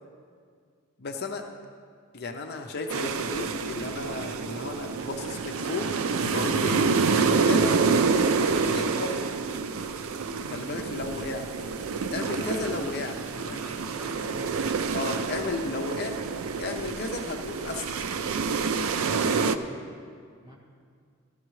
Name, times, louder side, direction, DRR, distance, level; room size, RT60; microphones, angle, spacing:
voice 1, 1.0-1.5 2.1-6.8 7.1-7.7 8.7-9.3 10.5-11.5 12.1-13.1 13.4-13.8 14.9-16.2 16.6-18.0, left 3 dB, 50° left, 3 dB, 0.6 m, -34 dB
sound 1, 2.9-19.6, right 4 dB, 85° right, 0.5 m, -27 dB
voice 2, 12.1-14.5 19.5-19.8 20.4-20.6, equal, 20° right, -5 dB, 2.0 m, -46 dB
14.0 x 12.0 x 3.2 m, 2.2 s
head